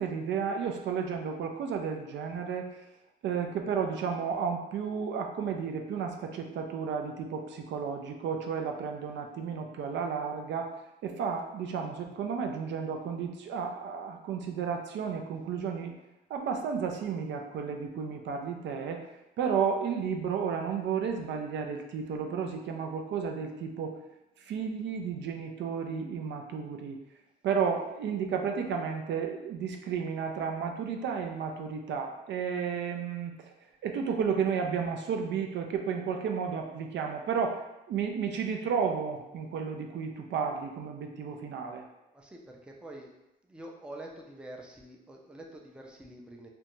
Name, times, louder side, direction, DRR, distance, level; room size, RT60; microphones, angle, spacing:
voice 1, 0.0-2.8 3.2-10.7 11.0-15.9 16.3-19.0 19.4-24.0 24.4-27.0 27.4-33.5 33.8-37.6 37.9-41.8, right 6 dB, 65° right, 3 dB, 0.4 m, -32 dB
voice 2, 42.1-43.1 43.5-46.5, right 1 dB, 5° right, 0 dB, 0.4 m, -46 dB
2.5 x 2.2 x 2.9 m, 0.91 s
cardioid pair, 90°, 20 cm